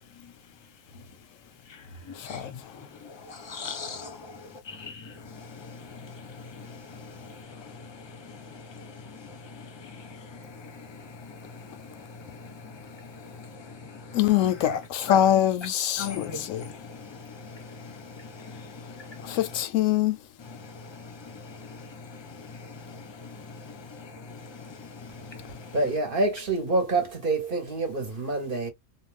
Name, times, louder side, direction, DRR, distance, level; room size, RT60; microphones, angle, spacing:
voice 1, 3.3-7.4 8.2-8.5 8.8-9.2 9.5-11.6 12.3-12.5 13.0-13.8 14.6-14.8 15.1-15.2 16.0-19.4 20.5-25.7, left 5 dB, 25° left, 0.7 m, -41 dB
voice 2, 14.1-16.7 19.3-20.2, left 11 dB, 80° left, 1.0 m, -24 dB
voice 3, 25.7-28.7, right 2 dB, 45° right, 1.0 m, -26 dB
2.5 x 2.3 x 3.3 m
omnidirectional pair, 1.3 m